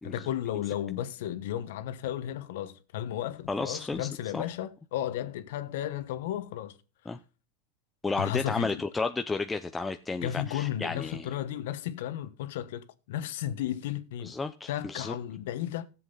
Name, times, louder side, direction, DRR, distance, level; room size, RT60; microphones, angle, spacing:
voice 1, 0.0-6.8 8.2-8.7 10.2-14.3 14.7-15.9, left 11 dB, 70° left, 1.2 m, -34 dB
voice 2, 3.5-4.4 7.1-7.2 8.0-11.3 14.2-15.1, left 3 dB, 10° left, 0.5 m, -32 dB
14.5 x 7.6 x 4.0 m
supercardioid pair, 140°, 0 cm